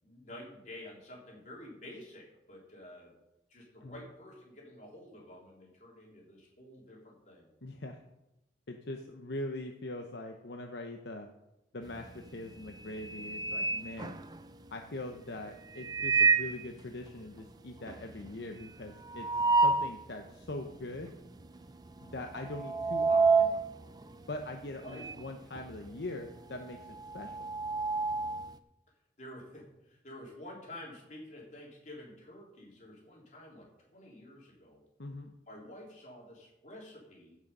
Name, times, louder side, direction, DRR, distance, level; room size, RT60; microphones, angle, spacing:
voice 1, 0.0-3.1 3.5-7.5 24.8-25.1 29.2-33.7 33.9-34.8 35.5-37.4, left 1 dB, 40° left, -2 dB, 3.4 m, -49 dB
voice 2, 7.6-8.0 8.7-11.3 11.7-14.2 14.7-21.1 22.0-23.6 24.1-27.4 35.0-35.3, left 2 dB, 65° left, 4 dB, 0.8 m, -42 dB
sound 1, 11.9-12.3 12.7-14.7 15.7-16.7 17.1-17.2 17.4-17.5 17.9-20.0 20.5-20.6 21.4-21.7 22.0-25.3 25.6-28.5, right 4 dB, 20° right, 0.4 m, -29 dB
15.5 x 6.4 x 5.4 m, 0.91 s
head